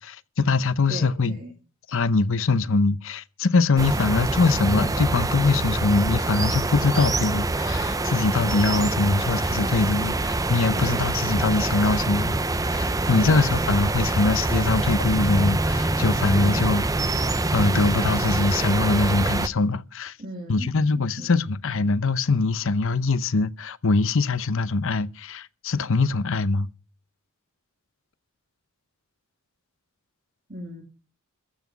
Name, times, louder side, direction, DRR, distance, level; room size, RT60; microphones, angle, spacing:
voice 1, 0.0-1.4 1.9-12.4 12.7-16.8 17.5-20.1 20.5-26.7, left 3 dB, 65° left, 0.7 m, -23 dB
voice 2, 0.9-1.5 8.8-9.1 10.7-11.0 13.1-13.7 16.4-16.7 20.2-21.4 30.5-30.8, equal, 40° right, 2.7 m, -37 dB
sound 1, 3.8-19.5, right 2 dB, 15° right, 0.6 m, -25 dB
14.5 x 6.1 x 9.5 m
head